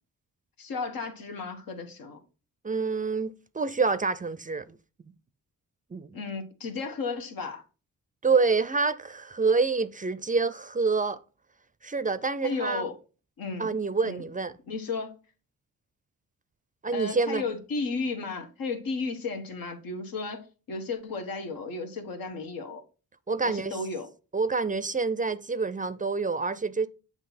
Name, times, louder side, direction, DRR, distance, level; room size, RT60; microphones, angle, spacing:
voice 1, 0.6-2.2 6.1-7.6 12.4-12.9 13.4-13.8 14.0-14.2 14.7-15.2 16.9-22.8 23.4-24.1, left 4 dB, 80° left, 1.3 m, -34 dB
voice 2, 2.6-4.7 5.9-6.1 8.2-11.2 11.8-12.9 13.6-14.5 16.8-17.4 23.3-23.8 24.3-26.9, right 4 dB, 25° right, 0.4 m, -27 dB
7.6 x 3.0 x 4.1 m
cardioid pair, 70°, 35 cm